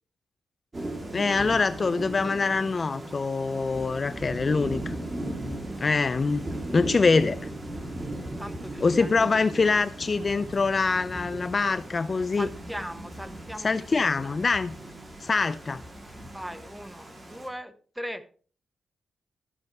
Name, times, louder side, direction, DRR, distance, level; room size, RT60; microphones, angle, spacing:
Thunder / Rain, 0.7-17.5, right 1 dB, 25° right, 2.5 m, -38 dB
voice 1, 1.1-5.0 5.8-6.5 6.7-7.4 8.8-12.5 13.6-14.8 15.2-15.8, left 4 dB, 30° left, 0.4 m, -24 dB
voice 2, 8.4-9.1 9.6-9.8 12.3-14.4 16.3-18.2, equal, 5° right, 1.0 m, -39 dB
13.5 x 6.4 x 4.6 m
wide cardioid pair, 135°, 0 cm